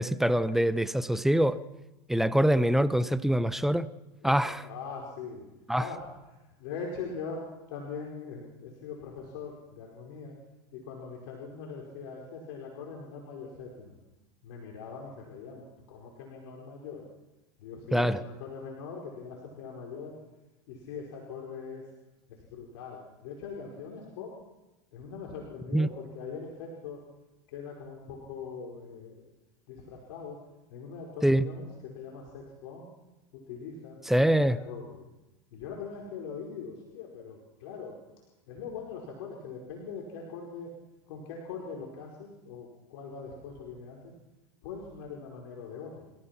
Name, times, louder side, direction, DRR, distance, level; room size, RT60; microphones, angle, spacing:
voice 1, 0.0-1.6 2.1-3.9 4.2-4.6 5.7-5.9 17.9-18.2 25.7-25.9 31.2-31.5 34.1-34.6, right 1 dB, ahead, 14 dB, 0.9 m, -24 dB
voice 2, 4.2-5.5 5.8-10.3 10.7-14.0 14.4-17.1 17.6-20.2 20.7-21.9 22.3-24.3 24.9-27.0 27.5-29.3 29.7-30.4 30.7-32.9 33.3-35.0 35.5-38.0 38.5-40.7 41.1-44.1 44.6-46.1, left 5 dB, 65° left, -1 dB, 4.9 m, -42 dB
29.0 x 15.5 x 6.0 m, 1.0 s
hypercardioid pair, 110°, 14 cm